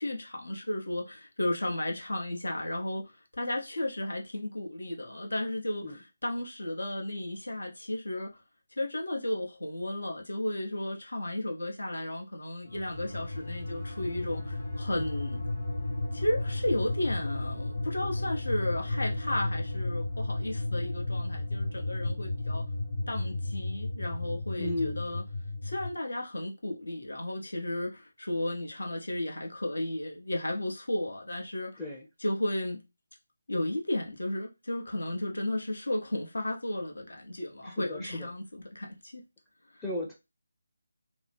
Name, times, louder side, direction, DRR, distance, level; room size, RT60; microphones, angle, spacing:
voice 1, 0.0-3.1 3.4-8.3 8.8-15.4 16.1-22.6 23.1-25.2 25.6-31.8 32.2-32.8 33.5-39.2 39.7-39.8, left 1 dB, 75° left, 0.9 m, -34 dB
sound 1, 12.7-25.9, left 2 dB, 30° left, 1.1 m, -33 dB
voice 2, 24.6-25.0 31.8-32.0 37.6-38.3 39.8-40.2, left 1 dB, 10° left, 0.5 m, -35 dB
2.7 x 2.0 x 3.4 m
figure-of-eight pair, 155°, 0 cm